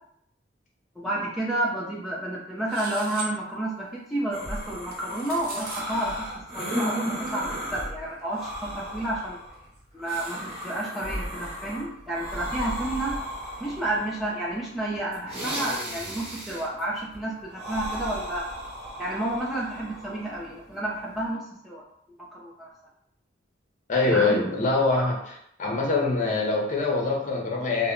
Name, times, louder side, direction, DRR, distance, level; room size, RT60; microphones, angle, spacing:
voice 1, 1.0-6.3 6.5-9.4 9.9-13.2 13.6-18.4 19.0-21.8 22.3-22.7 24.0-24.5, right 1 dB, ahead, -6 dB, 0.4 m, -30 dB
sound 1, 2.7-3.3 4.9-5.8, right 3 dB, 55° right, 0.5 m, -38 dB
sound 2, 4.3-21.3, equal, 35° right, 1.0 m, -36 dB
voice 2, 23.9-25.2 25.6-27.9, left 3 dB, 40° left, -1 dB, 0.6 m, -24 dB
2.0 x 2.0 x 3.6 m, 0.73 s
head